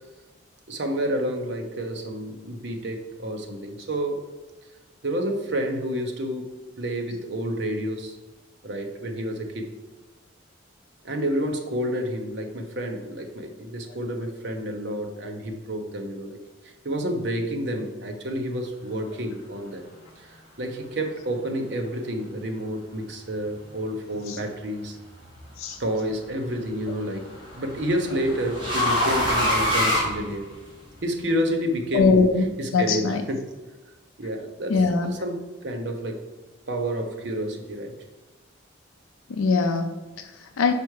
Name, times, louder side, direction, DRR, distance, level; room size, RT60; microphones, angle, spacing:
voice 1, 0.7-4.2 5.0-8.2 8.6-9.7 11.0-16.4 16.6-19.8 20.2-25.0 25.8-27.3 27.5-30.5 31.0-32.2 32.6-33.4 34.2-36.2 36.7-37.9, equal, 55° right, 3 dB, 0.8 m, -29 dB
sound 1, 25.0-25.5 26.9-30.9, left 1 dB, 25° right, 2.1 m, -25 dB
voice 2, 31.9-32.5 32.7-33.2 34.7-35.2 39.3-40.7, left 4 dB, 80° left, 6 dB, 0.4 m, -22 dB
5.1 x 4.6 x 4.8 m, 1.2 s
head